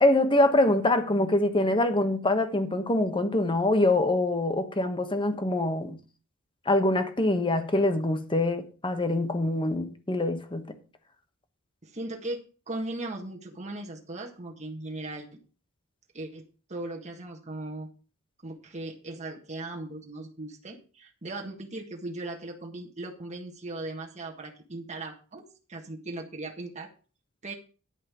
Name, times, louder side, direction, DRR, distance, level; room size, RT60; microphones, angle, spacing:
voice 1, 0.0-6.0 6.7-10.7, left 2 dB, 25° left, 1.2 m, -24 dB
voice 2, 11.8-12.4 12.7-15.3 16.1-16.4 16.7-17.9 18.4-26.9 27.4-27.5, right 2 dB, 35° right, 1.6 m, -38 dB
10.5 x 5.5 x 6.9 m
head